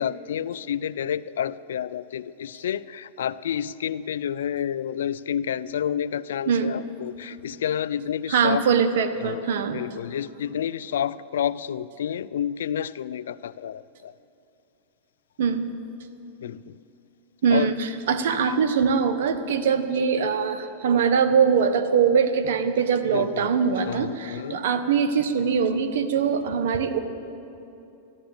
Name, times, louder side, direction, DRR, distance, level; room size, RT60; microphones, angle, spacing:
voice 1, 0.0-8.7 9.2-14.1 16.4-16.8 17.5-17.8 18.3-18.5 23.1-23.5 23.8-24.6, left 9 dB, 85° left, 17 dB, 0.4 m, -30 dB
voice 2, 6.5-6.8 8.3-9.8 15.4-15.7 17.4-27.0, right 6 dB, 75° right, 9 dB, 1.1 m, -22 dB
13.5 x 11.5 x 8.0 m, 2.8 s
hypercardioid pair, 120°, 0 cm